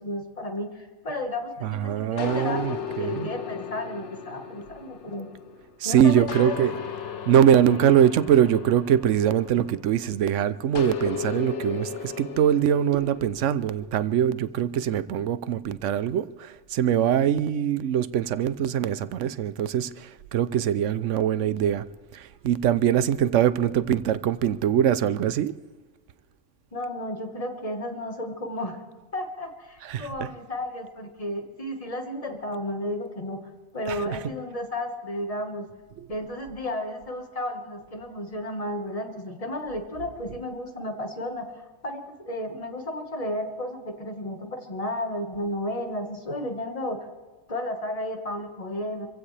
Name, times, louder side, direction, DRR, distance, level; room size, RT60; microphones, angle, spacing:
voice 1, 0.0-5.3 5.8-6.8 26.7-28.8 29.1-33.4 33.7-35.7 36.1-47.0 47.5-49.1, left 1 dB, 30° left, 1.5 m, -33 dB
voice 2, 1.6-3.3 5.8-6.7 7.3-21.9 22.1-25.5 29.8-30.3 33.9-34.2, right 9 dB, 90° right, 1.0 m, -23 dB
sound 1, 2.2-5.7 6.3-10.0 10.8-13.4, left 7 dB, 75° left, 1.2 m, -35 dB
27.0 x 16.0 x 3.3 m
omnidirectional pair, 1.2 m